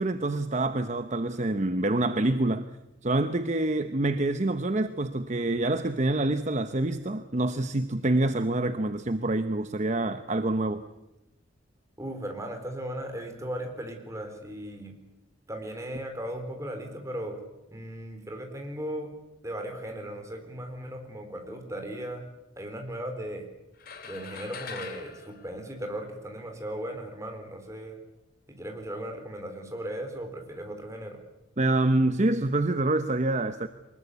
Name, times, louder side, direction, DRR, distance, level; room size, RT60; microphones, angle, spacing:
voice 1, 0.0-2.7 3.0-10.8 31.6-33.7, right 2 dB, 35° right, 10 dB, 0.9 m, -26 dB
voice 2, 12.0-15.0 15.5-17.4 17.7-19.1 19.4-22.2 22.6-23.5 24.0-28.0 28.5-31.2, right 1 dB, 15° right, 4 dB, 4.2 m, -37 dB
sound 1, 23.8-26.4, left 5 dB, 50° left, 2.7 m, -43 dB
23.5 x 21.0 x 8.5 m, 0.94 s
head